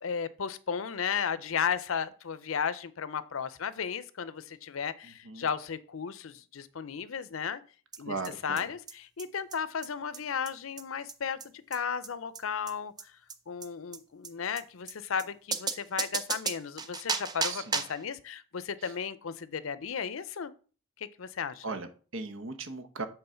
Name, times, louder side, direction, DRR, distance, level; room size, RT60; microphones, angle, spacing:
voice 1, 0.0-7.6 8.0-8.2 8.4-13.1 13.5-20.5 21.0-21.6, left 7 dB, 90° left, 15 dB, 0.6 m, -34 dB
voice 2, 5.0-5.5 8.0-8.7 17.4-17.8 18.8-18.9 21.6-23.1, right 3 dB, 75° right, 9 dB, 1.0 m, -38 dB
sound 1, 7.9-8.0 8.2-8.3 8.6-8.7 8.9-9.0 9.2-9.3 9.5-9.6 9.8-9.9 10.1-10.2 10.4-10.5 10.8-10.9 11.1-11.2 11.4-11.5 11.7-11.8 12.0-12.1 12.3-12.4 12.7-12.8 13.0-13.1 13.3-13.4 13.6-13.7 13.9-14.0 14.2-14.3 14.6-14.7 14.9-15.0 15.2-15.3 15.5-18.0, right 5 dB, 20° right, 0.5 m, -34 dB
7.8 x 3.7 x 5.6 m, 0.38 s
head